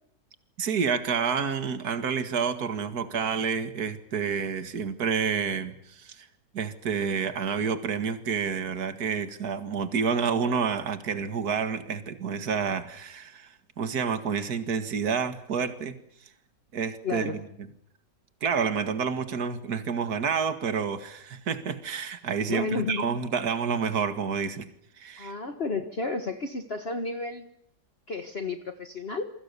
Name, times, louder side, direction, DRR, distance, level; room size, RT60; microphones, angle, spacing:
voice 1, 0.6-6.3 6.5-16.0 16.7-17.3 18.4-24.7 25.0-25.3, right 6 dB, 60° right, 10 dB, 2.3 m, -29 dB
voice 2, 17.0-17.4 22.5-23.0 25.2-27.5 28.1-29.3, left 3 dB, 35° left, 7 dB, 1.6 m, -32 dB
28.0 x 24.5 x 6.9 m, 0.70 s
omnidirectional pair, 1.9 m